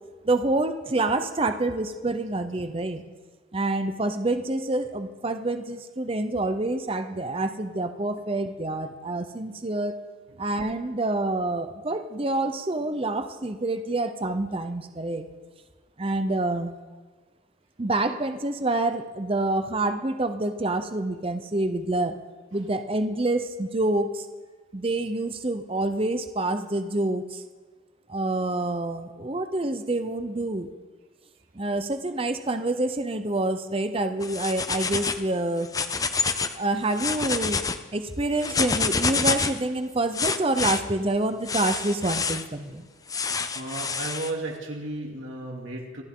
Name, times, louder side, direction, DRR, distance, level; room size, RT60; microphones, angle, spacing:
voice 1, 0.2-3.0 3.5-10.0 10.4-15.3 16.0-16.7 17.8-22.2 22.5-24.3 24.7-27.4 28.1-30.7 31.5-35.7 36.5-37.6 37.9-42.9, right 2 dB, 30° right, 8 dB, 0.7 m, -27 dB
sound 1, 34.2-35.2 35.6-36.6 36.9-37.8 38.4-39.6 40.1-40.8 41.5-42.4 43.1-44.3, left 5 dB, 20° left, 0.5 m, -27 dB
voice 2, 43.5-46.0, right 2 dB, 80° right, -1 dB, 2.8 m, -34 dB
26.5 x 11.5 x 3.8 m, 1.4 s
head